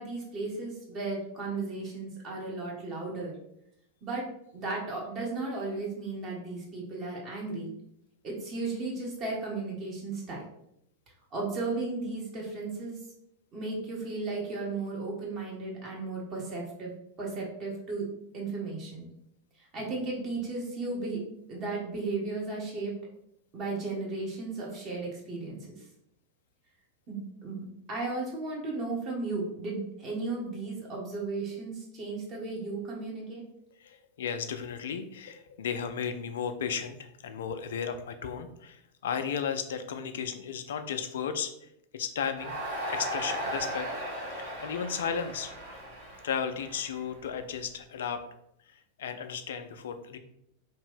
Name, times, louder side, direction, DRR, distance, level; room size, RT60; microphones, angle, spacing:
voice 1, 0.0-3.3 4.0-4.3 4.5-7.7 8.2-10.4 11.3-13.0 13.5-16.9 17.2-18.1 18.3-19.0 19.7-21.2 21.5-22.9 23.5-25.6 27.1-33.4, right 3 dB, 35° right, -3 dB, 1.1 m, -35 dB
voice 2, 33.8-41.5 41.9-42.6 42.9-43.9 44.4-45.5 46.2-48.2 48.7-50.2, left 7 dB, 60° left, 8 dB, 0.3 m, -34 dB
Crowd, 42.4-47.6, equal, 55° right, 1.3 m, -37 dB
2.9 x 2.5 x 3.3 m, 0.76 s
figure-of-eight pair, 90°, 0 cm